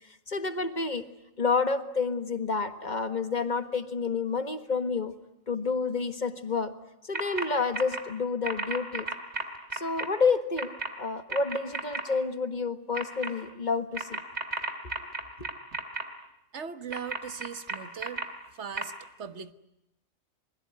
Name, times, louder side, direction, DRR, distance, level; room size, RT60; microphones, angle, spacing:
voice 1, 0.3-1.0 1.4-5.1 5.5-6.7 7.0-9.1 9.7-10.7 11.0-14.2 15.4-15.5, left 4 dB, 35° left, 10 dB, 1.7 m, -29 dB
sound 1, 7.1-7.5 7.7-8.0 8.4-10.1 10.6-10.9 11.3-12.0 12.9-13.3 13.9-16.0 16.9-18.2 18.8-18.9, right 3 dB, 30° right, 3.1 m, -32 dB
voice 2, 16.5-18.2 18.5-19.5, right 7 dB, 55° right, 12 dB, 1.6 m, -39 dB
27.0 x 22.0 x 9.4 m, 0.90 s
omnidirectional pair, 1.4 m